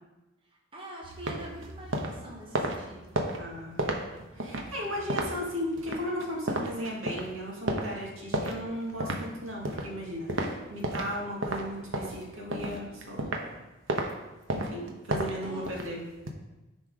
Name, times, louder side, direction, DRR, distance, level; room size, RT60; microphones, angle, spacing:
voice 1, 0.5-3.2 15.4-15.7, right 1 dB, 25° right, -2 dB, 1.2 m, -45 dB
sound 1, 1.0-11.1 11.4-13.5 13.9-14.1 14.5-16.3, right 1 dB, 75° right, 1.0 m, -33 dB
voice 2, 3.4-3.9 4.3-13.3 14.5-16.1, equal, 90° right, -2 dB, 2.2 m, -36 dB
9.9 x 4.4 x 4.8 m, 1.1 s
head